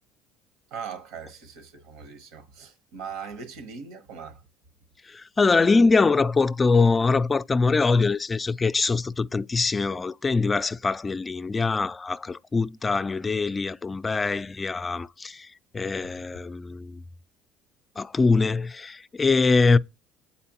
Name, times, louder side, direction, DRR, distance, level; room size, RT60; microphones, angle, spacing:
voice 1, 0.7-4.4, right 6 dB, 80° right, 1.0 m, -40 dB
voice 2, 5.1-15.5 15.7-17.0 18.0-19.8, left 4 dB, 25° left, 0.3 m, -23 dB
8.5 x 4.2 x 2.9 m
supercardioid pair, 90°, 0 cm